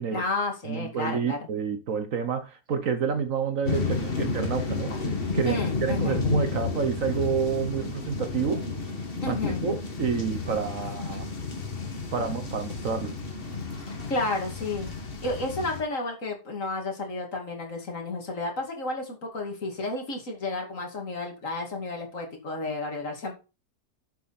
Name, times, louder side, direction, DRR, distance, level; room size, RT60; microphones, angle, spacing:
voice 1, 0.1-1.4 5.5-6.2 9.2-9.6 10.8-11.2 13.9-14.9 15.2-23.3, left 2 dB, 50° left, 2.8 m, -32 dB
voice 2, 0.6-5.0 5.3-8.7 9.3-11.3 12.1-13.1, right 6 dB, 60° right, 1.3 m, -29 dB
sound 1, 3.7-15.8, left 4 dB, 35° left, 1.9 m, -31 dB
11.0 x 6.8 x 4.2 m
omnidirectional pair, 1.7 m